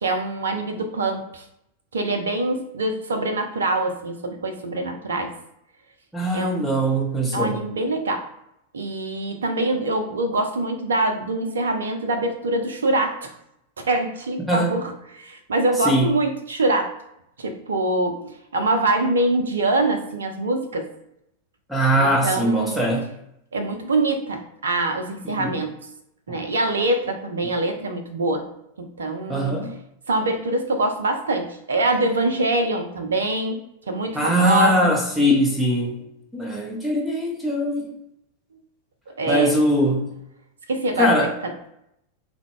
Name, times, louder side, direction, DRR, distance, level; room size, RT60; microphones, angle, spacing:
voice 1, 0.0-1.5 1.9-5.3 6.3-6.6 7.3-8.3 8.7-13.3 13.8-16.9 17.4-20.9 21.9-22.9 23.5-25.7 26.3-28.5 28.8-29.5 30.1-33.6 33.9-34.8 39.2-39.6 40.7-41.5, right 2 dB, 70° right, 5 dB, 0.5 m, -24 dB
voice 2, 6.1-7.6 14.5-14.7 15.9-16.1 21.7-23.1 25.4-25.5 26.3-26.4 29.3-29.7 34.2-36.0 36.3-37.9 39.3-40.1 41.0-41.3, equal, 5° right, -1 dB, 0.7 m, -21 dB
3.4 x 2.2 x 3.6 m, 0.79 s
figure-of-eight pair, 90°, 0 cm